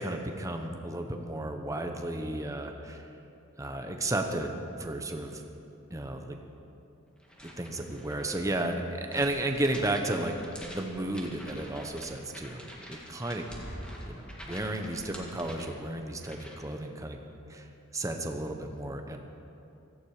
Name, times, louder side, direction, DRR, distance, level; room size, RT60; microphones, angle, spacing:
voice 1, 0.0-3.1 3.6-5.3 5.9-6.4 7.6-10.4 10.7-13.5 14.1-17.2 17.5-17.7 17.9-19.2, right 1 dB, 15° right, 4 dB, 1.1 m, -33 dB
sound 1, 7.2-16.7, equal, 5° left, 1.9 m, -48 dB
sound 2, 13.3-14.9, equal, 65° left, 3.9 m, -44 dB
17.0 x 15.0 x 5.0 m, 2.7 s
head